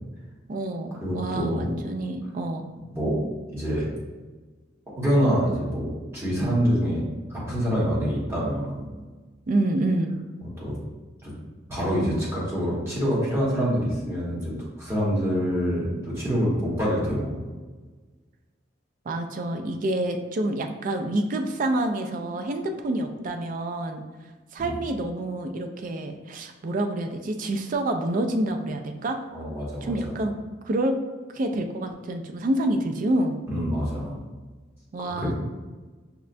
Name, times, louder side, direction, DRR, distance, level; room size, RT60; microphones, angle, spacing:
voice 1, 0.5-2.6 9.5-10.1 19.1-24.0 24.5-29.2 29.8-30.3 30.6-31.0 31.3-33.4 34.9-35.3, right 1 dB, 40° right, 6 dB, 0.3 m, -27 dB
voice 2, 1.0-1.6 2.9-3.2 3.5-3.8 5.0-8.9 10.6-10.8 11.2-11.3 11.7-17.5 24.6-24.7 29.3-29.9 33.5-34.2 35.2-35.3, equal, 15° right, -8 dB, 1.1 m, -26 dB
5.7 x 2.1 x 2.5 m, 1.3 s
head